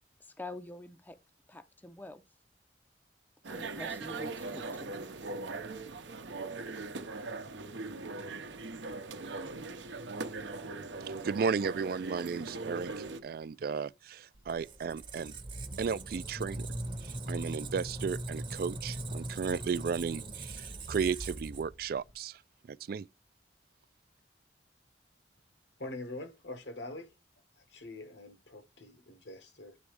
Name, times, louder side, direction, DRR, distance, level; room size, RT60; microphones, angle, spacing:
voice 1, 0.2-1.2 1.5-2.2 3.5-4.9, left 1 dB, 10° left, 0.5 m, -46 dB
sound 1, 3.4-13.2, right 3 dB, 85° right, 0.8 m, -40 dB
voice 2, 11.1-15.3 15.8-16.7 17.0-22.4 22.7-23.1, right 6 dB, 55° right, 0.3 m, -34 dB
Squeak, 14.4-22.1, right 2 dB, 25° right, 0.8 m, -40 dB
voice 3, 25.8-27.1 27.6-29.8, left 2 dB, 75° left, 1.5 m, -44 dB
9.6 x 3.5 x 3.3 m
head